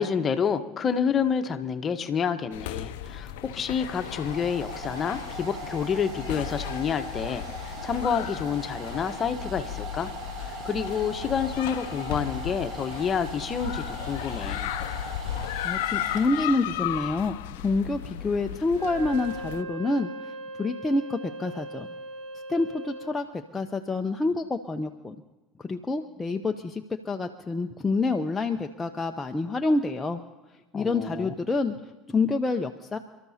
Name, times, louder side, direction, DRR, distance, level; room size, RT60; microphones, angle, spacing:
voice 1, 0.0-10.1 10.4-14.7 30.7-31.3, left 7 dB, 35° left, 8 dB, 1.1 m, -29 dB
sound 1, 2.5-19.6, left 11 dB, 70° left, 0.6 m, -35 dB
Domestic sounds home sounds, 3.1-16.8, right 2 dB, 50° right, 1.9 m, -40 dB
voice 2, 15.6-20.1 20.6-21.9 22.5-23.3 23.5-25.2 25.6-30.2 30.7-31.7 32.1-33.0, left 3 dB, 20° left, 4 dB, 0.7 m, -27 dB
Wind instrument woodwind instrument, 18.7-23.2, right 2 dB, 75° right, 5.9 m, -39 dB
28.5 x 13.0 x 2.8 m, 1.1 s
hypercardioid pair, 75°, 0 cm